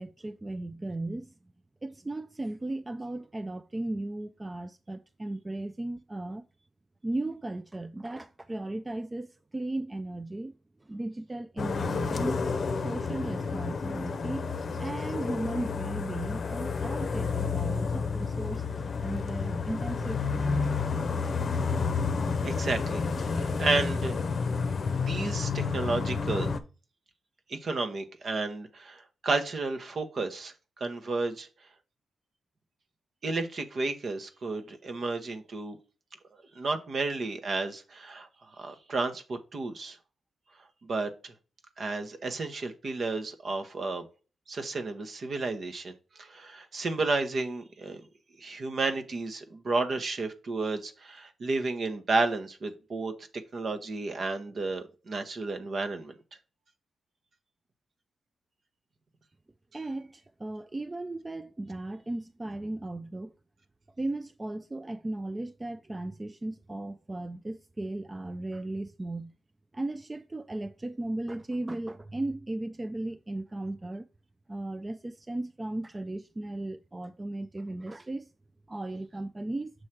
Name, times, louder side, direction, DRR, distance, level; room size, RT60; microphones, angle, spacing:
voice 1, 0.0-1.3 1.8-6.4 7.0-10.5 10.8-12.5 12.8-14.5 14.8-21.0 59.7-63.3 64.0-69.3 69.7-74.0 74.5-78.3 78.7-79.7, right 2 dB, 25° right, 0.4 m, -36 dB
sound 1, 11.6-26.6, left 5 dB, 55° left, 0.6 m, -30 dB
voice 2, 22.4-23.0 23.3-24.2 24.9-26.5 27.5-30.5 30.8-31.5 33.2-35.8 36.6-38.3 38.6-40.0 40.8-41.3 41.8-44.1 44.5-45.9 46.2-48.0 48.4-53.1 53.5-56.1, right 3 dB, 60° right, 1.0 m, -32 dB
6.4 x 3.2 x 5.7 m
supercardioid pair, 45°, 0 cm